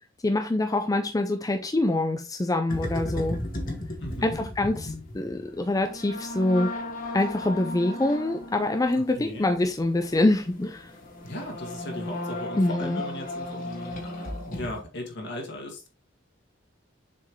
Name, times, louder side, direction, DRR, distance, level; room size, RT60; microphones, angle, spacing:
voice 1, 0.2-3.4 4.2-6.7 7.1-10.9 12.6-13.0, left 2 dB, 20° left, 0.4 m, -25 dB
sound 1, 2.7-14.8, left 1 dB, 45° left, 1.8 m, -36 dB
voice 2, 4.0-4.5 9.2-9.5 11.2-15.9, left 1 dB, 60° left, 2.0 m, -37 dB
7.2 x 4.4 x 3.1 m
head